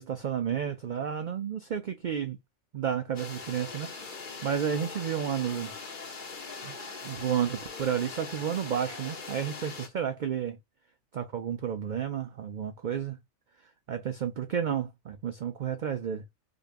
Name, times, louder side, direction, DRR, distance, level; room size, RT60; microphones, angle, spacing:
voice 1, 0.0-2.4 2.7-4.1 4.4-5.7 6.6-6.8 7.0-10.6 11.1-13.2 13.9-16.2, right 8 dB, 55° right, 0.5 m, -31 dB
sound 1, 3.2-9.9, left 4 dB, 45° left, 1.1 m, -41 dB
5.0 x 2.4 x 2.5 m
omnidirectional pair, 1.2 m